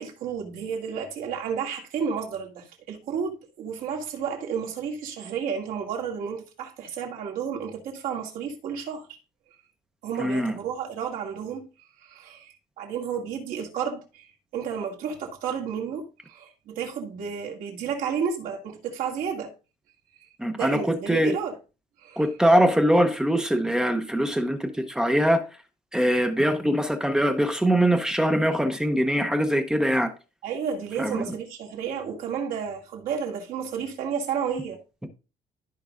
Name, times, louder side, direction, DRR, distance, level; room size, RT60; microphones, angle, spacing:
voice 1, 0.0-9.1 10.0-11.7 12.0-14.3 14.5-19.5 20.5-21.6 22.0-22.2 30.4-34.8, right 7 dB, 70° right, 2.3 m, -32 dB
voice 2, 10.2-10.5 20.4-21.4 22.2-25.5 25.9-30.1 31.0-31.2, equal, 5° right, 0.7 m, -22 dB
13.5 x 5.3 x 2.5 m
cardioid pair, 170°, 15 cm